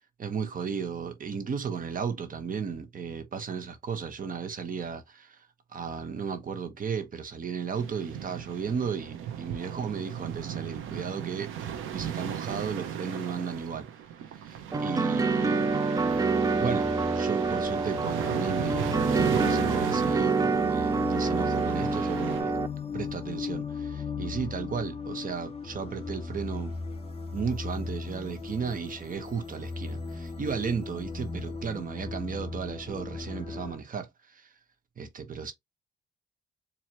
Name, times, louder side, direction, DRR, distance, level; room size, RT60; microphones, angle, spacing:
voice 1, 0.2-5.5 5.7-13.9 14.4-15.7 16.6-22.6 22.9-26.7 27.3-34.5 35.0-35.5, right 6 dB, 45° right, 1.0 m, -34 dB
sound 1, 7.7-22.4, right 9 dB, 90° right, 0.8 m, -37 dB
sound 2, 14.7-22.7, right 4 dB, 20° right, 0.5 m, -27 dB
sound 3, 15.9-33.8, left 5 dB, 30° left, 2.5 m, -37 dB
4.5 x 2.8 x 3.0 m
cardioid pair, 90°, 20 cm